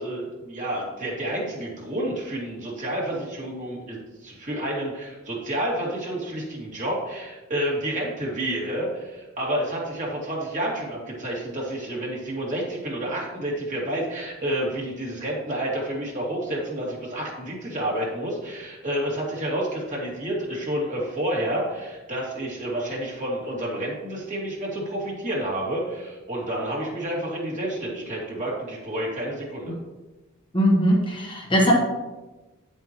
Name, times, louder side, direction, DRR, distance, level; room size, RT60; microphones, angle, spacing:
voice 1, 0.0-29.7, right 1 dB, 35° right, -4 dB, 2.4 m, -29 dB
voice 2, 30.5-31.7, equal, 25° left, -1 dB, 1.2 m, -20 dB
9.5 x 7.6 x 3.0 m, 1.1 s
head